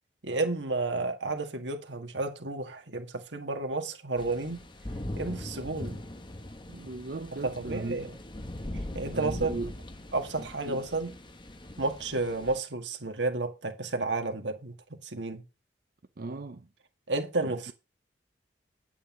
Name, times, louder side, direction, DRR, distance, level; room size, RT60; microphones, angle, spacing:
voice 1, 0.2-4.6 5.2-6.0 7.4-8.2 8.9-9.5 10.1-11.1 11.8-15.4 17.1-17.7, right 3 dB, 80° right, 1.9 m, -31 dB
sound 1, 4.2-12.6, left 1 dB, 25° left, 1.2 m, -41 dB
voice 2, 6.7-8.0 9.1-9.7 10.4-10.8 16.2-16.7 17.4-17.7, right 3 dB, 55° right, 0.7 m, -38 dB
9.3 x 8.5 x 3.9 m
head